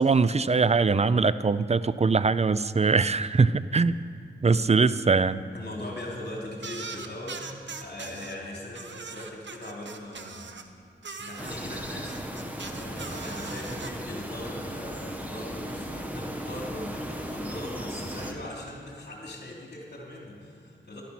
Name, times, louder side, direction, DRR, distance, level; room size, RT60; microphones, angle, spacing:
voice 1, 0.0-4.0 4.4-5.4, right 4 dB, 35° right, 15 dB, 0.5 m, -22 dB
voice 2, 5.5-10.5 11.2-21.0, left 1 dB, 65° left, -2 dB, 3.0 m, -40 dB
sound 1, 6.6-8.4 8.7-10.7 11.0-13.9, right 5 dB, 75° right, 0.9 m, -40 dB
sound 2, 11.4-18.3, equal, 10° right, 1.6 m, -36 dB
15.0 x 12.0 x 5.9 m, 2.3 s
wide cardioid pair, 60°, 19 cm